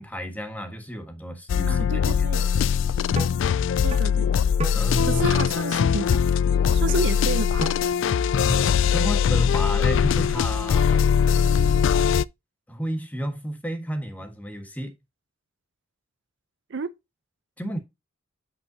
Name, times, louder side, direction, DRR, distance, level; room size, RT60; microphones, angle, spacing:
voice 1, 0.0-2.4 4.7-5.2 8.4-11.0 12.7-14.9 17.6-17.8, equal, 10° left, 1.4 m, -31 dB
sound 1, 1.5-12.2, left 7 dB, 65° left, 0.3 m, -21 dB
voice 2, 1.7-2.4 3.8-4.5 5.1-6.1 6.7-7.8 16.7-16.9, right 4 dB, 65° right, 0.6 m, -30 dB
sound 2, 2.4-2.5 3.2-3.3 3.9-4.0 4.6-4.7 5.3-5.5 6.1-6.3 6.9-7.0 7.6-7.7, right 1 dB, 30° right, 1.5 m, -31 dB
8.8 x 5.5 x 2.8 m
head